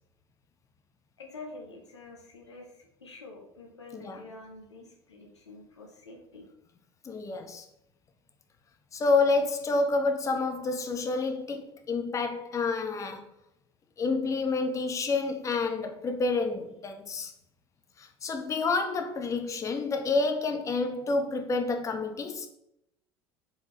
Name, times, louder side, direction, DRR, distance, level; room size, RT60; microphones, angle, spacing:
voice 1, 1.2-6.5, left 2 dB, 90° left, 1.0 m, -47 dB
voice 2, 7.0-7.7 8.9-13.3 14.0-17.3 18.0-22.5, left 3 dB, 20° left, 0.5 m, -29 dB
4.5 x 3.7 x 3.1 m
hypercardioid pair, 70°, 14 cm